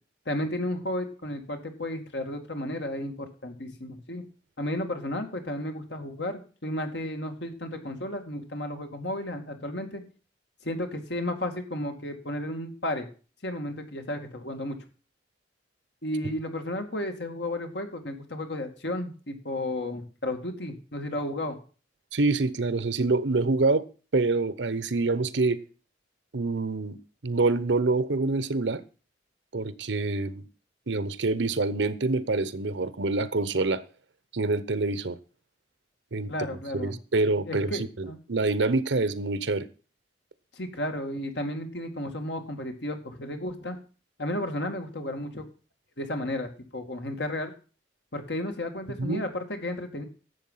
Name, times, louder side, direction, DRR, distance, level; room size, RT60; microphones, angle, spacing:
voice 1, 0.3-4.2 4.6-10.0 10.6-13.1 13.4-14.8 16.0-21.6 36.3-36.9 37.5-38.2 40.5-43.8 44.2-45.4 46.0-47.5 48.1-50.0, left 1 dB, 65° left, 5 dB, 2.3 m, -33 dB
voice 2, 22.1-23.8 24.1-25.6 26.3-27.0 27.2-28.8 29.5-30.4 30.9-33.8 34.3-35.2 36.1-36.3 36.7-39.7 49.0-49.2, right 3 dB, 75° right, 16 dB, 0.9 m, -26 dB
12.0 x 7.5 x 5.7 m, 0.37 s
head